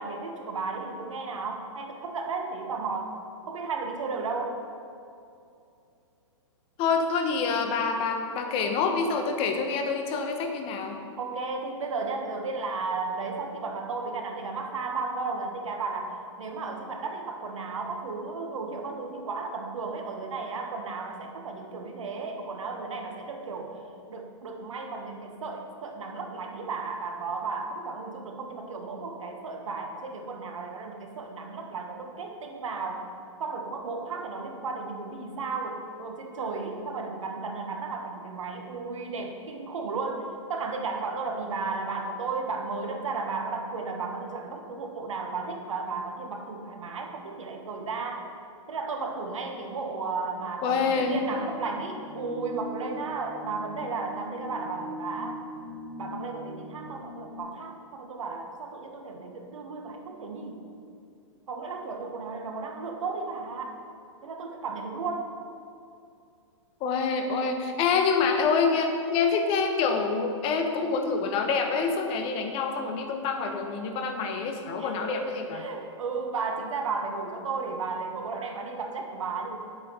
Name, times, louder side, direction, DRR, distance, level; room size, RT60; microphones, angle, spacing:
voice 1, 0.0-3.2 3.5-4.6 11.2-23.8 24.1-33.1 33.4-48.3 48.7-55.4 56.0-60.6 61.5-63.8 64.2-65.3 74.8-79.6, right 4 dB, 75° right, 4 dB, 1.6 m, -34 dB
voice 2, 6.8-11.0 50.6-51.2 66.8-75.6, left 5 dB, 35° left, 4 dB, 1.3 m, -26 dB
sound 1, 50.7-57.4, left 1 dB, 65° left, 2.5 m, -42 dB
8.5 x 7.9 x 5.7 m, 2.5 s
hypercardioid pair, 120°, 17 cm